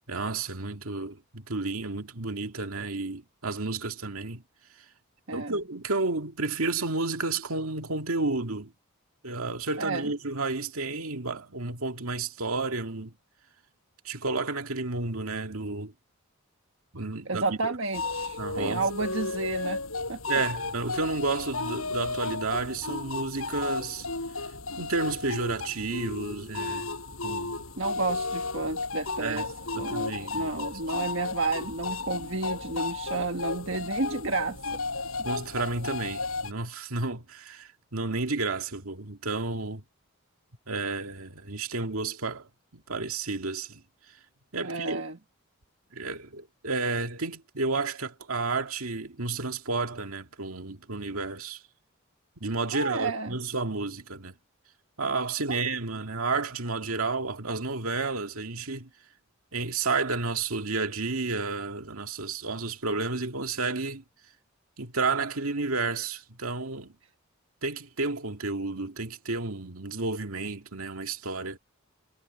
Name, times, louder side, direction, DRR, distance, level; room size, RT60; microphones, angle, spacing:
voice 1, 0.1-4.4 5.3-8.7 9.2-13.1 14.0-15.9 16.9-17.7 18.4-18.8 20.3-24.1 24.8-26.9 27.2-27.6 29.2-30.7 35.2-39.8 40.7-43.8 44.5-45.0 45.9-51.6 52.4-54.3 55.0-58.9 59.5-64.0 64.8-66.9 67.6-71.6, right 3 dB, 80° right, 2.2 m, -31 dB
voice 2, 5.3-5.6 9.8-10.1 17.3-19.8 20.1-20.2 27.8-29.5 29.7-34.6 44.6-45.2 52.7-53.3 55.5-55.6, right 3 dB, 60° right, 1.5 m, -31 dB
sound 1, 17.9-36.5, left 3 dB, 80° left, 6.1 m, -34 dB
head